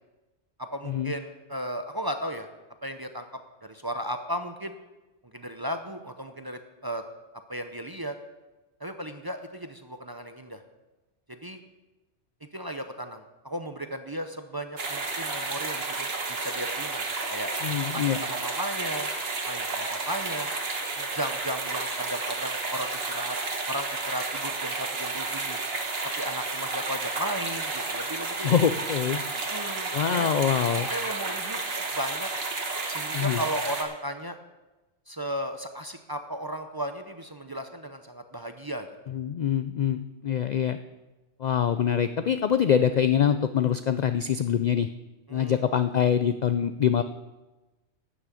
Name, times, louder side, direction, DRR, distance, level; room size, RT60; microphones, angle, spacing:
voice 1, 0.6-2.5 2.8-3.3 3.6-4.7 5.3-7.0 7.5-8.1 8.8-10.6 11.3-11.6 12.5-17.0 17.3-17.5 17.9-19.1 19.5-20.5 21.0-23.4 23.7-25.6 26.2-28.6 29.5-30.3 30.7-31.6 32.0-32.3 32.9-34.4 35.1-38.9 45.3-45.7, equal, 25° right, 6 dB, 0.5 m, -35 dB
sound 1, 14.8-33.8, right 3 dB, 60° right, 1.6 m, -31 dB
voice 2, 17.6-18.2 28.4-29.2 29.9-30.9 33.1-33.4 39.1-40.8 41.4-44.9 45.3-47.0, left 8 dB, 60° left, 11 dB, 0.4 m, -24 dB
12.5 x 6.1 x 8.3 m, 1.1 s
omnidirectional pair, 1.2 m